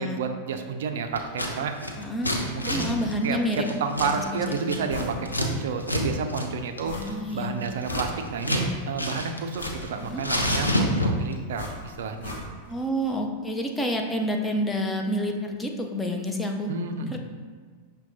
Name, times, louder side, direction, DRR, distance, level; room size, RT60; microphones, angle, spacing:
voice 1, 0.0-1.7 2.3-2.9 3.2-7.0 7.3-12.4 16.7-17.2, right 5 dB, 60° right, 6 dB, 0.4 m, -30 dB
Scissors, 1.2-1.5 1.8-5.5 5.8-6.0 6.3-6.5 6.8-8.7 9.0-9.9 10.2-11.3, left 1 dB, 85° left, 0.5 m, -28 dB
voice 2, 2.0-2.3 2.6-3.7 4.0-4.6 6.9-7.5 9.9-10.2 12.7-16.7 17.0-17.2, equal, 10° left, 2 dB, 0.5 m, -29 dB
sound 1, 4.9-5.2 5.6-5.7 6.8-7.3 7.7-8.6 9.6-10.8 11.5-12.8 13.1-13.2, left 2 dB, 65° left, 0.9 m, -37 dB
5.8 x 2.2 x 3.9 m, 1.5 s
figure-of-eight pair, 90°, 0 cm